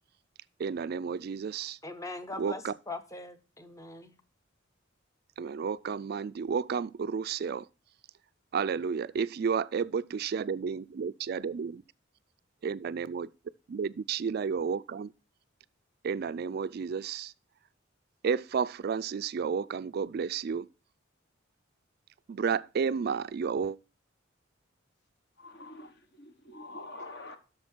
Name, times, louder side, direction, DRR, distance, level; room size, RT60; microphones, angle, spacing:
voice 1, 0.6-1.8 2.4-2.7 5.4-7.7 8.5-11.8 12.6-13.3 13.7-15.1 16.0-17.3 18.2-20.7 22.3-23.8, right 6 dB, 50° right, 0.3 m, -31 dB
voice 2, 1.8-4.2, left 2 dB, 15° left, 0.7 m, -41 dB
voice 3, 25.4-27.4, left 2 dB, 55° left, 1.3 m, -46 dB
8.5 x 6.4 x 4.4 m
head